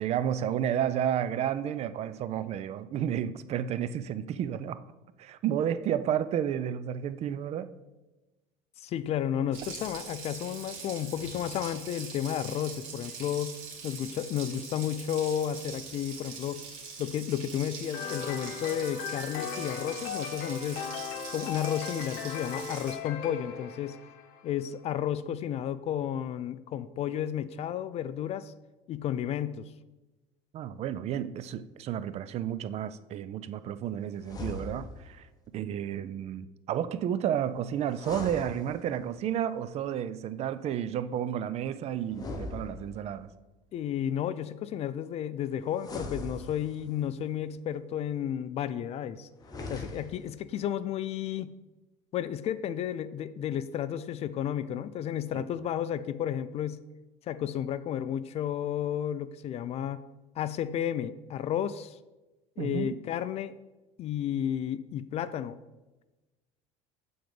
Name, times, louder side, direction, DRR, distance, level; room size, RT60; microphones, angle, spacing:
voice 1, 0.0-4.8 5.2-7.7 30.5-35.3 35.5-43.3 55.3-55.4 62.6-63.0, right 9 dB, 45° right, 0.4 m, -31 dB
voice 2, 8.8-13.6 13.8-16.6 17.0-20.9 21.3-24.0 24.4-28.5 28.9-29.7 43.7-49.3 49.7-51.5 52.1-56.8 57.3-60.0 60.4-61.9 62.6-63.5 64.0-65.6, left 10 dB, 45° left, 0.4 m, -32 dB
Water tap faucet, 9.5-22.9, right 5 dB, 90° right, 1.8 m, -43 dB
sound 1, 17.9-24.6, left 7 dB, 75° left, 0.8 m, -38 dB
sound 2, 34.2-35.2 37.9-39.2 42.1-43.3 45.8-47.0 49.4-50.3, left 2 dB, 25° left, 1.0 m, -40 dB
7.6 x 3.9 x 5.1 m
supercardioid pair, 110°, 15 cm